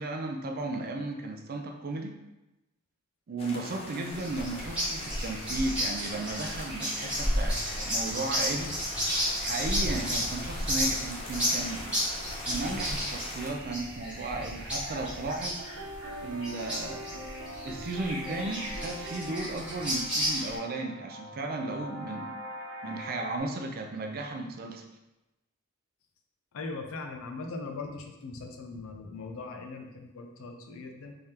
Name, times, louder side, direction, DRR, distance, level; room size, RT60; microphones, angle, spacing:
voice 1, 0.0-2.2 3.3-8.7 9.4-12.0 12.5-15.6 16.2-17.1 17.6-22.4 22.8-24.8, right 2 dB, 45° right, 3 dB, 0.4 m, -35 dB
sound 1, 3.4-13.5, left 2 dB, 25° left, 0.6 m, -42 dB
sound 2, 4.1-20.6, equal, 5° right, 1.3 m, -32 dB
sound 3, 15.6-23.4, equal, 70° right, 0.8 m, -42 dB
voice 2, 26.5-31.1, left 3 dB, 70° left, 4 dB, 0.5 m, -40 dB
3.6 x 3.3 x 2.8 m, 0.98 s
head